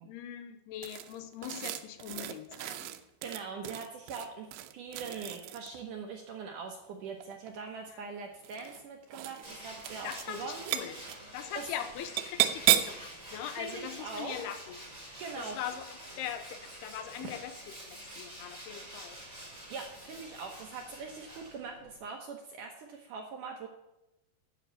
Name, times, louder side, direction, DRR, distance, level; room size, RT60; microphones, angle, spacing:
voice 1, 0.0-2.9 7.9-8.1 10.0-11.0 11.3-14.8 15.4-19.2, left 10 dB, 85° left, 10 dB, 2.8 m, -41 dB
sound 1, 0.8-5.8 7.1-7.7 8.4-8.8 9.1-9.5 9.8-10.3 10.5-11.2 12.2-13.1, right 13 dB, 90° right, 2.8 m, -33 dB
voice 2, 3.2-4.5 4.7-10.7 11.6-11.7 13.6-14.3 15.2-15.6 19.7-23.7, right 5 dB, 70° right, 2 dB, 2.0 m, -42 dB
Tools, 9.4-21.9, right 1 dB, 10° right, 4.3 m, -47 dB
10.0 x 6.3 x 8.0 m, 0.88 s
omnidirectional pair, 4.8 m